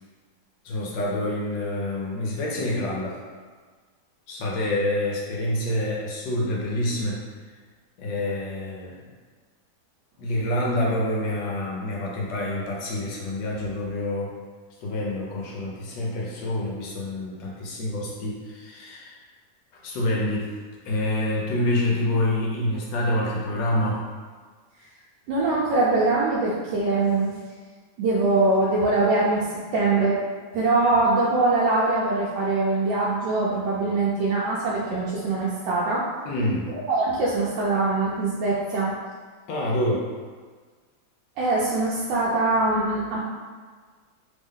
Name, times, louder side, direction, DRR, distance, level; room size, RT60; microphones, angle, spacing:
voice 1, 0.6-3.2 4.3-7.2 8.0-9.0 10.2-14.3 14.8-19.2 19.7-20.5 20.8-24.0 36.2-36.7 39.5-40.1, left 1 dB, 70° left, -4 dB, 1.2 m, -27 dB
voice 2, 25.3-27.3 28.0-30.2 30.5-36.0 36.9-38.9 41.4-43.2, right 2 dB, 75° right, -6 dB, 1.1 m, -23 dB
3.3 x 2.1 x 3.6 m, 1.5 s
omnidirectional pair, 2.3 m